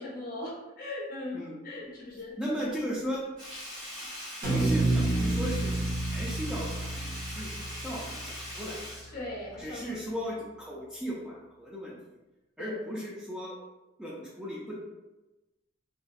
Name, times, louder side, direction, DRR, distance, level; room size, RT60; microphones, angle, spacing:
voice 1, 0.0-2.4 9.1-10.2 12.6-12.7, left 2 dB, 45° left, -4 dB, 0.7 m, -39 dB
voice 2, 1.3-2.0 2.4-3.3 4.4-8.8 9.6-12.0 12.6-13.6 14.0-14.8, equal, 5° right, -6 dB, 0.3 m, -37 dB
Sink (filling or washing), 3.4-9.9 10.2-10.3, equal, 20° right, 1.0 m, -41 dB
sound 1, 4.4-8.6, right 2 dB, 45° right, 0.7 m, -30 dB
2.6 x 2.1 x 2.3 m, 1.0 s
head